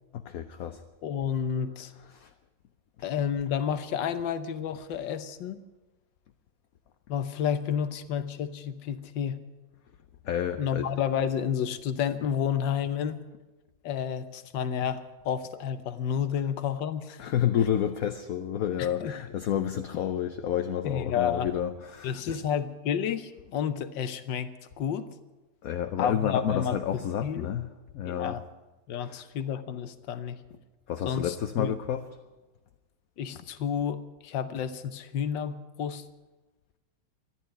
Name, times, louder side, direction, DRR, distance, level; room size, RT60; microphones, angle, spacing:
voice 1, 0.1-0.8 2.1-2.3 10.2-10.9 17.2-22.4 25.6-27.7 27.9-28.4 29.0-29.2 30.9-32.0, left 9 dB, 60° left, 8 dB, 1.0 m, -30 dB
voice 2, 1.0-1.9 3.0-5.6 7.1-9.4 10.6-13.2 13.8-17.3 18.8-19.1 20.8-21.5 22.0-25.1 26.0-27.5 28.0-28.4 28.9-30.4 31.0-31.7 33.2-36.0, left 8 dB, 80° left, 12 dB, 1.6 m, -30 dB
14.0 x 11.0 x 9.0 m, 1.1 s
omnidirectional pair, 2.0 m